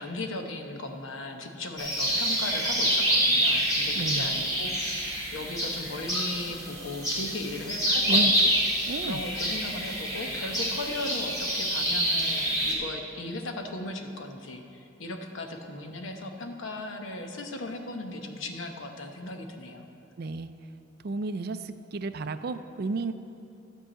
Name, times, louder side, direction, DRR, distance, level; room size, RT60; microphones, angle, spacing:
voice 1, 0.0-5.0 5.3-8.5 9.0-19.8, left 2 dB, 80° left, 4 dB, 1.0 m, -37 dB
sound 1, 1.8-12.7, equal, 20° left, 2.4 m, -27 dB
voice 2, 4.0-4.3 8.1-8.3 8.9-9.2 20.2-20.5 21.0-23.1, right 3 dB, 50° right, 11 dB, 0.4 m, -32 dB
12.5 x 4.7 x 7.8 m, 2.7 s
head